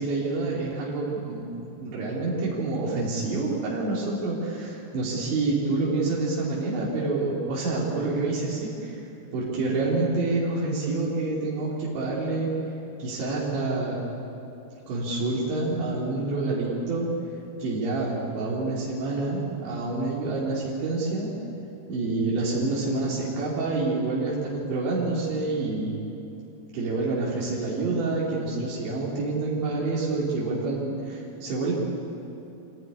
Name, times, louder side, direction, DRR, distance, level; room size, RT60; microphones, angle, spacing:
voice 1, 0.0-9.0 9.3-12.5 13.0-14.1 14.9-17.1 17.6-21.3 21.9-26.0 26.7-31.7, right 3 dB, 90° right, -6 dB, 5.5 m, -27 dB
25.5 x 16.5 x 9.8 m, 2.8 s
omnidirectional pair, 5.1 m